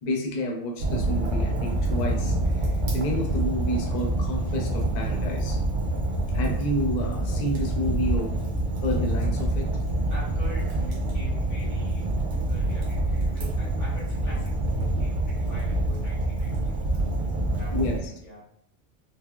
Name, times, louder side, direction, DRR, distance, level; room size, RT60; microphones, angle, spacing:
voice 1, 0.0-2.6 2.9-5.6 6.3-8.4 8.8-9.7 17.7-18.0, equal, 50° left, 0 dB, 0.6 m, -30 dB
Fire, 0.8-18.0, right 1 dB, 85° right, 1.1 m, -26 dB
voice 2, 10.1-12.2 12.4-17.2 17.5-18.5, left 1 dB, 85° left, -6 dB, 1.7 m, -45 dB
4.2 x 2.1 x 2.2 m, 0.70 s
omnidirectional pair, 1.2 m